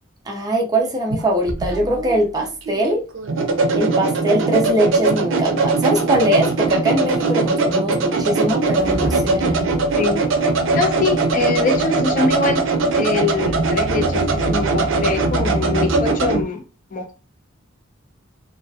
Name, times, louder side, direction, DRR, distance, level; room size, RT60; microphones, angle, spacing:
voice 1, 0.3-3.0 3.8-9.7, right 1 dB, 20° right, 0.5 m, -21 dB
sound 1, 1.1-16.4, right 3 dB, 80° right, 0.5 m, -20 dB
Motor vehicle (road) / Engine starting / Accelerating revving vroom, 6.1-6.2 6.4-6.6 7.3-7.4 8.6-16.4, right 1 dB, 45° right, 0.8 m, -30 dB
voice 2, 10.7-12.6 12.9-16.6 16.9-17.2, left 4 dB, 45° left, 0.6 m, -23 dB
2.7 x 2.3 x 2.3 m
head